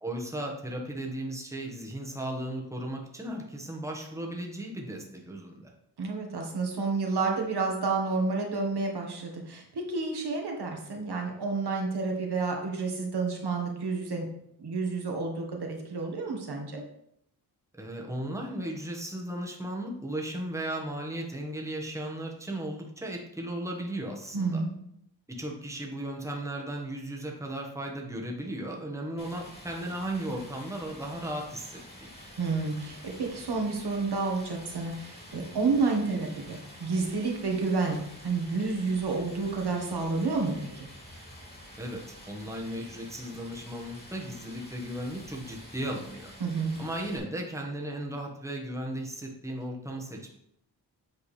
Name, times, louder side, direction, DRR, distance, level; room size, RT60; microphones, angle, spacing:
voice 1, 0.0-5.7 17.7-24.6 25.3-32.1 41.8-46.3 46.8-50.3, right 1 dB, 5° right, 0 dB, 1.3 m, -36 dB
voice 2, 6.0-14.2 14.6-16.8 24.3-24.7 32.4-40.9 46.4-46.7, right 4 dB, 70° right, 1 dB, 1.6 m, -30 dB
Stream, 29.2-47.2, equal, 25° left, 2.7 m, -48 dB
8.3 x 4.6 x 3.3 m, 0.74 s
cardioid pair, 80°, 41 cm